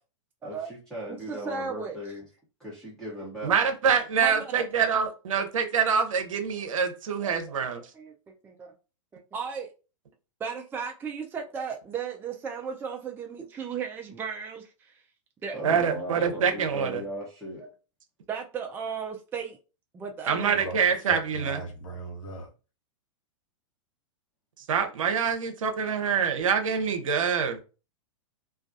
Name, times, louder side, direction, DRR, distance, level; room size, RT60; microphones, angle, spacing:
voice 1, 0.4-2.2 2.6-3.5 15.5-17.6, equal, 5° left, 0.9 m, -37 dB
voice 2, 1.3-2.0 4.2-4.6 7.2-8.1 8.4-8.7 9.1-9.7 10.4-15.0 15.4-15.5 17.6-17.7 18.3-19.6 19.9-20.7, right 6 dB, 10° right, 0.3 m, -35 dB
voice 3, 3.4-7.8 15.6-17.0 20.3-21.6 24.7-27.6, right 6 dB, 80° right, 0.7 m, -25 dB
voice 4, 20.4-22.5, right 1 dB, 75° left, 1.0 m, -39 dB
2.3 x 2.2 x 2.6 m
hypercardioid pair, 115°, 17 cm